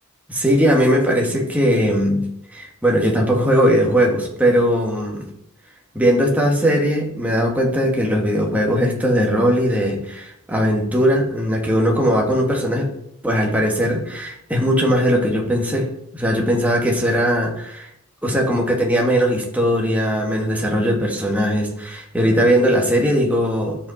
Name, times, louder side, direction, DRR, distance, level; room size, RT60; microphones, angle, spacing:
voice 1, 0.3-5.3 5.9-12.9 13.2-17.9 18.2-23.8, equal, 5° right, -1 dB, 1.9 m, -19 dB
12.5 x 5.7 x 4.2 m, 0.78 s
head